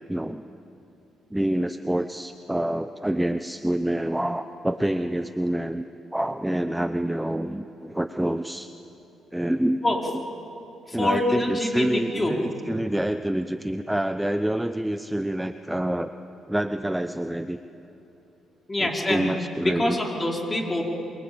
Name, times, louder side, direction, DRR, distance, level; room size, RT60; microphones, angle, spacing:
voice 1, 0.1-0.4 1.3-5.8 6.1-8.7 9.3-10.2 10.9-16.1 16.5-17.6 18.8-20.0, right 1 dB, 5° right, 9 dB, 0.8 m, -27 dB
voice 2, 10.9-12.3 18.7-19.4 19.6-20.8, left 1 dB, 20° left, 0 dB, 4.8 m, -25 dB
27.0 x 24.0 x 8.8 m, 3.0 s
cardioid pair, 90°, 0 cm